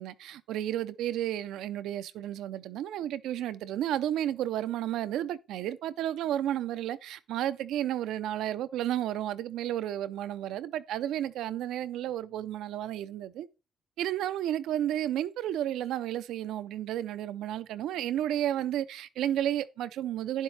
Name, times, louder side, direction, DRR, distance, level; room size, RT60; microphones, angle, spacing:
voice 1, 0.0-13.5 14.0-20.4, right 11 dB, 85° right, 0.5 m, -32 dB
10.5 x 7.3 x 3.3 m
cardioid pair, 90°, 0 cm